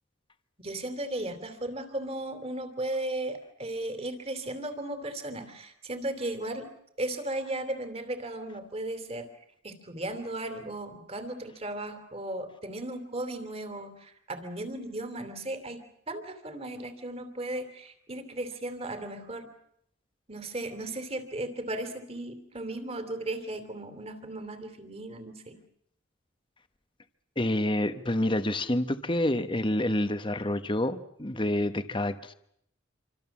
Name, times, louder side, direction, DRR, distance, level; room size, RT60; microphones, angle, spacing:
voice 1, 0.6-6.7 7.0-9.3 9.6-19.5 20.3-25.6, right 1 dB, 30° right, 8 dB, 3.0 m, -36 dB
voice 2, 27.4-32.3, left 1 dB, 25° left, 10 dB, 1.2 m, -28 dB
27.0 x 25.0 x 7.3 m, 0.73 s
head